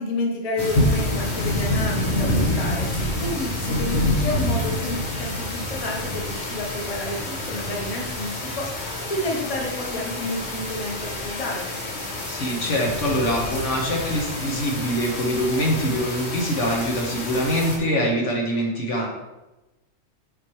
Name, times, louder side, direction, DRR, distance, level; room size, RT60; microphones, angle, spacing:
voice 1, 0.0-11.7, left 2 dB, 30° left, 0 dB, 1.0 m, -30 dB
sound 1, 0.6-17.8, left 1 dB, 60° left, 1.5 m, -27 dB
voice 2, 12.3-19.1, equal, 75° left, -1 dB, 1.6 m, -24 dB
7.4 x 5.0 x 3.1 m, 1.0 s
omnidirectional pair, 1.3 m